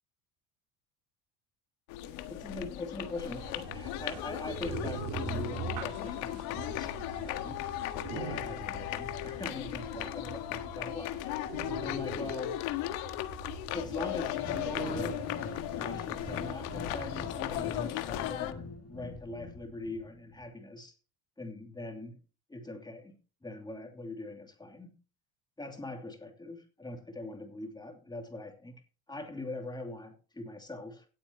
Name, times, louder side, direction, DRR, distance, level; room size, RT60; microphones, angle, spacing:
sound 1, 1.9-18.5, left 14 dB, 90° left, 1.5 m, -37 dB
voice 1, 2.3-6.9 7.2-7.6 8.1-11.5 11.8-12.6 13.7-15.2 15.8-20.9 21.4-22.2 22.5-23.2 23.4-25.0 25.6-28.8 29.1-31.1, left 2 dB, 10° left, 2.7 m, -42 dB
sound 2, 3.3-17.6, right 5 dB, 60° right, 4.2 m, -43 dB
sound 3, 14.4-20.4, left 3 dB, 30° left, 2.4 m, -43 dB
17.5 x 8.5 x 2.9 m
cardioid pair, 125°, 45 cm